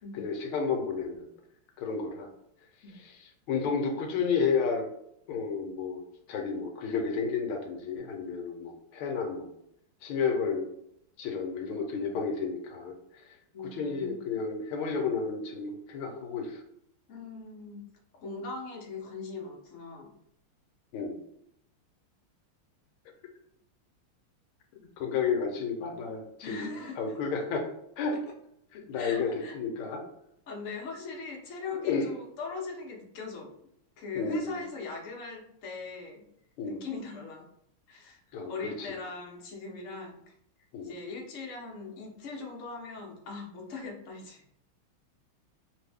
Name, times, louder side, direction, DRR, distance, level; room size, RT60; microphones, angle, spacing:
voice 1, 0.1-1.3 1.8-2.3 3.0-3.1 3.5-4.9 5.3-6.0 6.3-9.5 10.0-10.6 11.2-13.4 13.7-16.6 20.9-21.2 24.8-27.7 28.0-28.2 28.7-30.0 31.8-32.1 34.1-34.6 36.6-36.8 38.3-38.9 40.7-40.9, left 5 dB, 80° left, 3 dB, 1.5 m, -31 dB
voice 2, 13.5-14.3 17.1-17.8 18.2-20.1 26.4-27.0 28.1-28.2 29.0-29.5 30.5-33.5 34.0-36.2 36.7-37.5 37.9-38.2 38.5-40.3 40.8-44.4, left 4 dB, 60° left, -1 dB, 0.8 m, -40 dB
3.2 x 2.6 x 3.4 m, 0.74 s
omnidirectional pair, 2.3 m